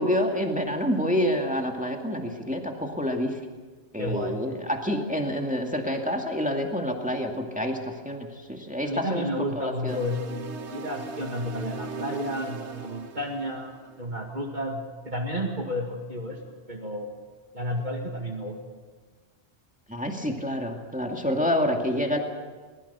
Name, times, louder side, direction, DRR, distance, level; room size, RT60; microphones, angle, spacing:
voice 1, 0.0-3.4 3.9-9.3 9.5-10.0 19.9-22.2, equal, 5° right, 2 dB, 2.3 m, -28 dB
voice 2, 4.0-4.3 8.8-10.4 10.7-16.4 16.7-17.1 17.5-18.6, equal, 45° right, 1 dB, 2.3 m, -31 dB
sound 1, 9.9-14.2, right 5 dB, 80° right, 1.4 m, -39 dB
22.0 x 21.0 x 6.9 m, 1.4 s
omnidirectional pair, 1.1 m